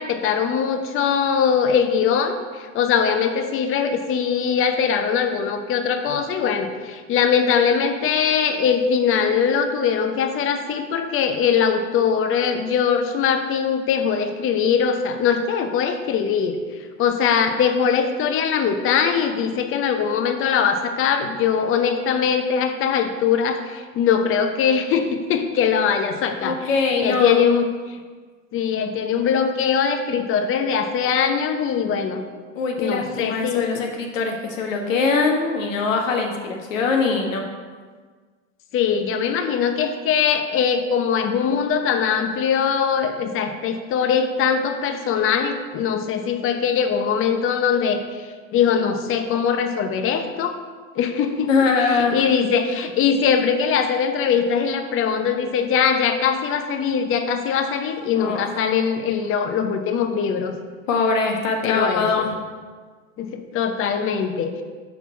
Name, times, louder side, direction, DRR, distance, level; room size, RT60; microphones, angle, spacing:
voice 1, 0.0-16.6 17.0-26.6 27.0-28.0 28.5-32.2 32.8-33.8 38.7-48.0 48.5-50.5 51.0-51.5 51.8-60.5 61.6-62.2 63.2-64.5, left 7 dB, 35° left, 7 dB, 0.7 m, -21 dB
voice 2, 26.4-27.4 32.6-37.4 51.5-52.2 58.2-58.5 60.9-62.3, left 4 dB, 80° left, 2 dB, 1.1 m, -22 dB
5.8 x 4.1 x 4.6 m, 1.5 s
hypercardioid pair, 95°, 39 cm